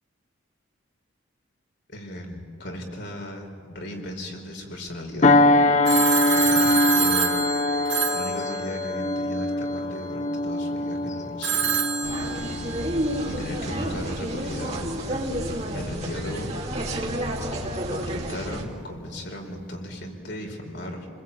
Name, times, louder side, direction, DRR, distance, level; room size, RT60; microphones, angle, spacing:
voice 1, 1.9-5.5 6.3-7.5 8.1-11.7 13.3-15.4 15.7-16.5 17.9-21.1, equal, 60° left, 2 dB, 4.3 m, -36 dB
sound 1, 5.2-14.1 14.5-14.8, left 2 dB, 35° left, 1.0 m, -23 dB
Telephone, 5.8-9.1 11.4-12.9, right 7 dB, 60° right, 2.5 m, -27 dB
sound 2, 12.0-18.6, equal, 30° right, 2.8 m, -30 dB
29.5 x 21.0 x 8.6 m, 2.3 s
head